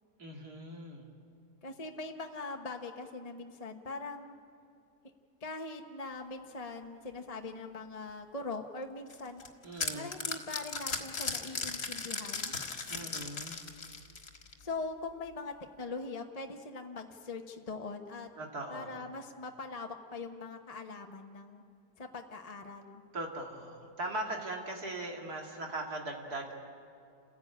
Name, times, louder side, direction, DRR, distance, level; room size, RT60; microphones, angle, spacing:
voice 1, 0.2-1.1 9.6-10.1 12.9-13.6 18.4-19.1 23.1-26.5, right 2 dB, 60° right, 0 dB, 2.7 m, -40 dB
voice 2, 1.6-4.3 5.4-9.4 9.9-12.5 14.6-18.3 18.7-21.6 22.0-23.0, left 3 dB, 25° left, 3 dB, 1.0 m, -42 dB
sound 1, 9.1-14.6, left 4 dB, 55° left, 2.2 m, -37 dB
29.5 x 16.0 x 8.7 m, 2.5 s
omnidirectional pair, 1.8 m